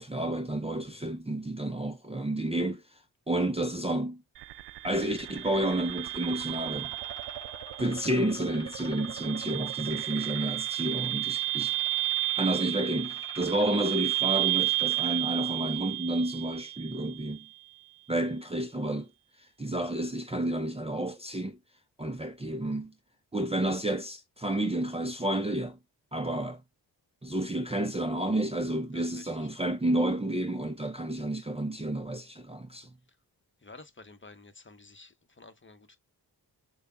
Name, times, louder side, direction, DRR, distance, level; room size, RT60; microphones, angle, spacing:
voice 1, 0.0-3.0 3.3-4.2 4.8-6.9 7.8-11.8 12.4-17.5 18.1-19.1 19.4-21.6 22.0-22.9 23.3-25.8 26.1-26.6 27.2-32.9, right 1 dB, 15° right, 0.6 m, -30 dB
voice 2, 0.9-1.2 11.5-11.7 28.9-29.5 33.6-36.0, left 3 dB, 25° left, 1.0 m, -52 dB
sound 1, 4.4-17.4, right 20 dB, 70° right, 0.5 m, -32 dB
sound 2, 5.2-15.2, left 1 dB, 10° left, 2.1 m, -49 dB
6.6 x 2.4 x 2.3 m
supercardioid pair, 45°, 43 cm